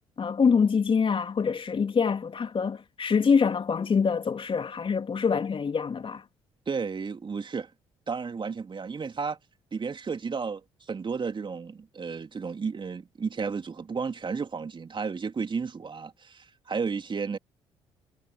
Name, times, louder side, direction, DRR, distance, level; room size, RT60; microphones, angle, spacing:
voice 1, 0.2-6.2, left 6 dB, 35° left, 3.3 m, -25 dB
voice 2, 6.7-7.7 8.1-9.4 9.7-17.4, right 5 dB, 35° right, 3.2 m, -33 dB
figure-of-eight pair, 45°, 15 cm